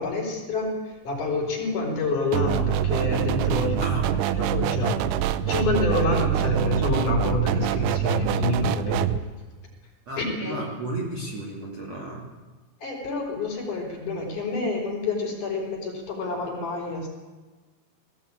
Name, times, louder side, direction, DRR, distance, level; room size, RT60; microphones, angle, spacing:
voice 1, 0.0-4.0 4.4-9.1 10.2-10.6 12.8-17.1, left 3 dB, 45° left, -1 dB, 5.2 m, -28 dB
sound 1, 2.3-9.2, right 11 dB, 80° right, 3.2 m, -25 dB
voice 2, 3.8-4.3 6.1-6.2 10.1-12.2, right 2 dB, 40° right, -1 dB, 3.0 m, -34 dB
19.5 x 17.0 x 8.8 m, 1.3 s
omnidirectional pair, 5.5 m